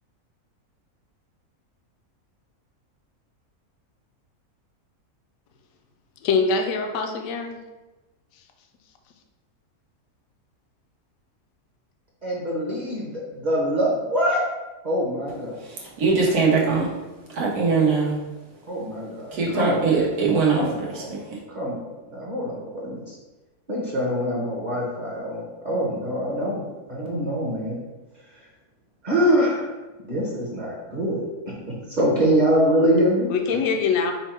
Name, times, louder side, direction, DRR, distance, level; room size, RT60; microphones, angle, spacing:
voice 1, 6.2-7.6 33.3-34.1, left 5 dB, 70° left, 4 dB, 0.9 m, -23 dB
voice 2, 12.2-14.4 14.8-15.5 17.6-17.8 18.7-19.9 20.6-21.2 21.5-23.1 23.7-26.6 26.9-27.8 29.0-29.7 30.0-31.5 31.9-33.3, equal, 35° right, -4 dB, 0.9 m, -24 dB
voice 3, 16.0-16.9 17.4-18.2 19.3-21.0, right 4 dB, 85° right, -3 dB, 1.5 m, -21 dB
5.4 x 2.2 x 4.3 m, 1.1 s
omnidirectional pair, 1.6 m